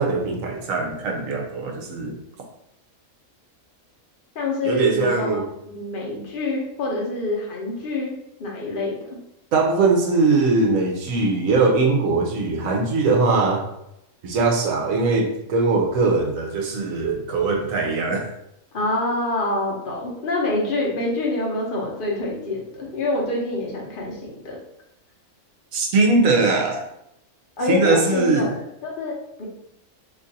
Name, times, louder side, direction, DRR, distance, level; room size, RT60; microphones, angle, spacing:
voice 1, 0.0-2.2 4.6-5.4 9.5-13.7 14.2-18.3 25.7-26.8 27.7-28.5, right 3 dB, 70° right, 1 dB, 1.1 m, -21 dB
voice 2, 4.3-8.1 8.4-9.2 18.7-24.6 27.6-29.4, left 2 dB, 45° left, -2 dB, 0.8 m, -26 dB
2.9 x 2.5 x 4.0 m, 0.82 s
omnidirectional pair, 1.5 m